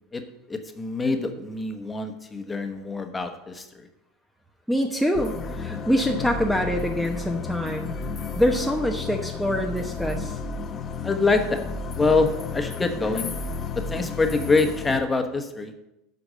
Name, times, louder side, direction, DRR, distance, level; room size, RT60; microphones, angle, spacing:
voice 1, 0.5-3.6 11.0-11.6 11.9-13.3 13.9-15.7, left 3 dB, 15° left, 6 dB, 1.2 m, -25 dB
voice 2, 4.7-8.0 8.3-10.4, equal, ahead, 3 dB, 0.9 m, -25 dB
sound 1, 5.1-15.0, left 4 dB, 35° left, 0.9 m, -33 dB
8.2 x 5.1 x 7.6 m, 0.90 s
hypercardioid pair, 90°, 0 cm